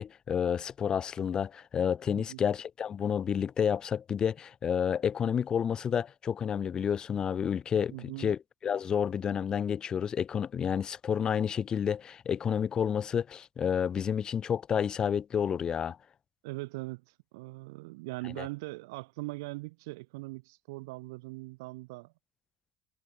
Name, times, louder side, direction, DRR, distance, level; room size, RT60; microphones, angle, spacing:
voice 1, 0.0-7.9 8.2-8.4 8.6-16.0 18.4-18.5, left 8 dB, 40° left, 6.5 m, -30 dB
voice 2, 7.9-8.3 16.4-22.1, right 23 dB, 75° right, 4.3 m, -41 dB
hypercardioid pair, 75°, 2 cm